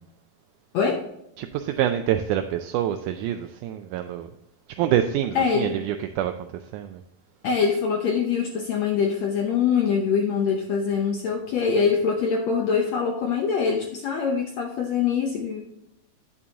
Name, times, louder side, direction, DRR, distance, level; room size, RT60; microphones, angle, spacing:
voice 1, 0.7-1.0 5.3-5.7 7.4-15.6, left 6 dB, 70° left, 2 dB, 1.7 m, -24 dB
voice 2, 1.4-4.3 4.8-6.3 6.7-7.0, right 11 dB, 85° right, 8 dB, 1.8 m, -26 dB
11.0 x 6.9 x 2.9 m, 0.83 s
omnidirectional pair, 4.0 m